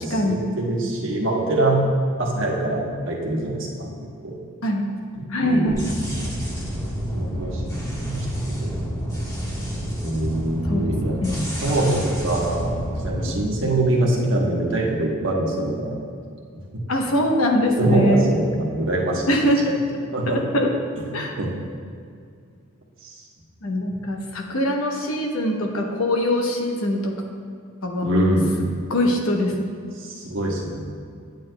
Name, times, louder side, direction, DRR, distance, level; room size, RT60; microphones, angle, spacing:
voice 1, 0.0-1.8 2.2-3.9 4.2-4.3 5.1-5.9 7.1-8.7 10.0-15.9 17.8-19.3 20.1-20.4 21.0-21.1 21.4-21.5 23.0-23.1 28.0-28.5 30.0-30.8, right 1 dB, 60° right, -2 dB, 1.2 m, -24 dB
voice 2, 5.3-5.9 10.7-10.8 11.2-11.4 16.9-18.3 19.3-19.8 20.3-20.7 21.1-21.3 23.6-27.1 27.8-28.4 28.9-29.6, left 1 dB, 70° left, 2 dB, 0.9 m, -22 dB
sound 1, 5.7-13.3, equal, 15° left, 1.2 m, -29 dB
9.2 x 8.5 x 2.2 m, 2.3 s
head